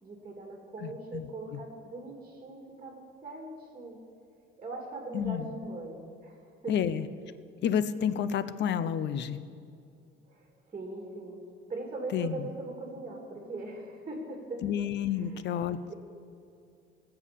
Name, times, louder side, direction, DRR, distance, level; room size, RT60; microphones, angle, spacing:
voice 1, 0.0-4.0 4.6-6.8 10.3-10.5 10.7-11.4 11.7-14.6 15.2-15.4 15.9-16.0, right 2 dB, 25° right, 1 dB, 2.5 m, -40 dB
voice 2, 0.8-1.3 5.1-5.5 6.7-7.0 7.6-9.4 12.1-12.5 14.6-15.9, left 8 dB, 60° left, 14 dB, 0.8 m, -30 dB
19.0 x 7.2 x 8.5 m, 2.5 s
cardioid pair, 135°, 21 cm